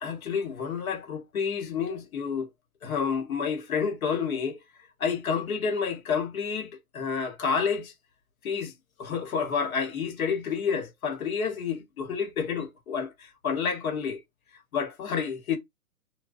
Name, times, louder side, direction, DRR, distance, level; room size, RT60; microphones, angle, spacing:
voice 1, 0.0-2.5 2.8-4.6 5.0-7.9 8.4-8.7 9.0-14.2 14.7-15.6, left 6 dB, 70° left, 1.0 m, -29 dB
2.4 x 2.1 x 2.4 m
hypercardioid pair, 165°, 44 cm